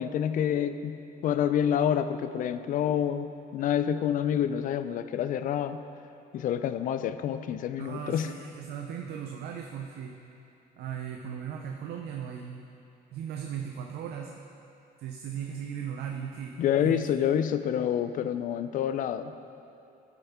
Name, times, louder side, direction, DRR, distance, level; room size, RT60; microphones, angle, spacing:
voice 1, 0.0-5.8 6.3-8.3 16.6-19.3, left 9 dB, 55° left, 11 dB, 0.4 m, -28 dB
voice 2, 7.8-10.2 10.8-12.6 13.1-14.4 15.0-17.1, right 8 dB, 70° right, 2 dB, 0.6 m, -37 dB
11.0 x 6.9 x 3.6 m, 2.7 s
cardioid pair, 110°, 17 cm